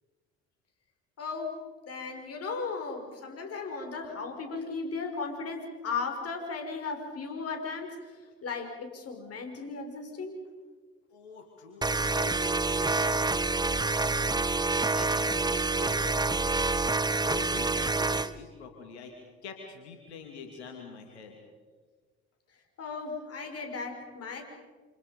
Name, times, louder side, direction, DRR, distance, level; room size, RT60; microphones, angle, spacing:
voice 1, 1.2-10.4 22.8-24.4, left 4 dB, 45° left, 4 dB, 6.2 m, -36 dB
voice 2, 11.1-14.7 14.9-16.9 17.2-19.1 19.4-21.4, left 4 dB, 85° left, 3 dB, 2.7 m, -45 dB
sound 1, 11.8-18.3, right 3 dB, 10° right, 1.0 m, -27 dB
28.5 x 27.5 x 5.4 m, 1.5 s
hypercardioid pair, 60°, 32 cm